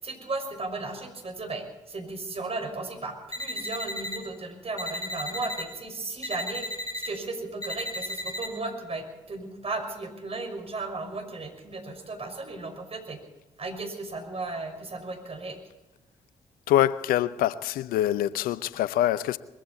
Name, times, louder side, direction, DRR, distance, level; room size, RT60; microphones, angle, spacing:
voice 1, 0.0-6.6 6.9-13.2 13.6-15.6, right 3 dB, 40° right, 5.9 m, -35 dB
sound 1, 3.3-4.2 4.8-5.6 6.2-7.1 7.6-8.5, left 1 dB, 25° left, 6.6 m, -34 dB
voice 2, 16.7-19.4, left 12 dB, 75° left, 0.6 m, -24 dB
22.0 x 15.0 x 4.4 m
hypercardioid pair, 45°, 15 cm